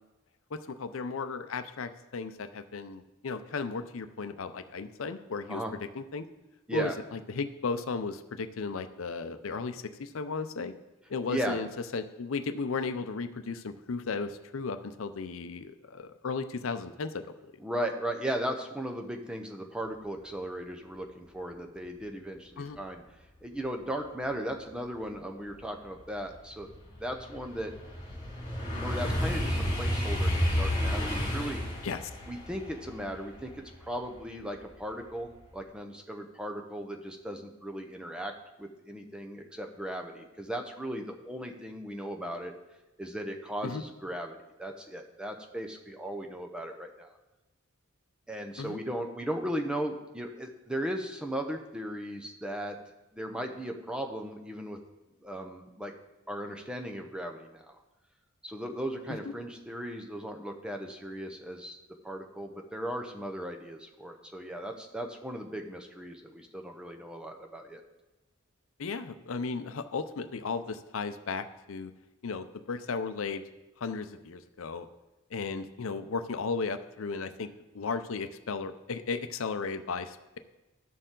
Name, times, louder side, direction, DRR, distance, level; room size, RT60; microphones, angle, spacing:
voice 1, 0.5-5.6 5.9-6.3 6.7-10.7 11.1-11.7 11.9-17.5 22.6-22.8 31.8-32.0 43.6-43.8 48.6-48.8 59.1-59.2 68.8-71.9 72.2-73.4 73.8-74.9 75.3-77.5 77.7-80.4, left 4 dB, 80° left, 10 dB, 0.6 m, -35 dB
voice 2, 11.3-11.6 17.6-23.0 23.4-27.7 28.7-31.6 32.2-38.3 38.6-42.5 43.0-47.2 48.3-52.8 53.1-54.8 55.2-55.9 56.3-57.8 58.4-61.8 62.0-67.8, equal, 5° right, 3 dB, 0.8 m, -37 dB
sound 1, 25.1-25.2 25.7-34.7 35.1-35.5, equal, 40° left, 3.1 m, -32 dB
12.0 x 6.8 x 3.8 m, 1.0 s
head